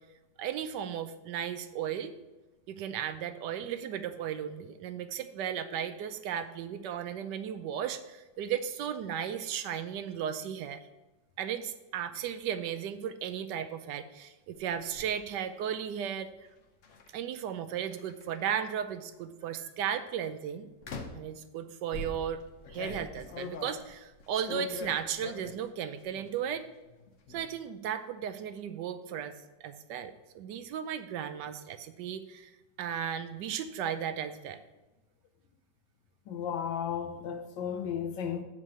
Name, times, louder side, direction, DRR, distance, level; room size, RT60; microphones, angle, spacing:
voice 1, 0.4-2.2 2.7-10.8 11.4-16.3 17.1-20.7 21.1-22.4 22.7-26.6 27.3-29.3 29.6-32.5 32.8-34.6, right 9 dB, 75° right, 1.1 m, -35 dB
sound 1, 14.5-15.1 16.8-17.1 17.8-18.7 19.4-19.7 20.8-21.3 21.9-25.7 26.0-26.6 26.8-27.4, left 3 dB, 55° left, 0.9 m, -42 dB
voice 2, 36.3-38.4, left 8 dB, 85° left, 1.5 m, -34 dB
7.4 x 4.5 x 6.3 m
omnidirectional pair, 2.0 m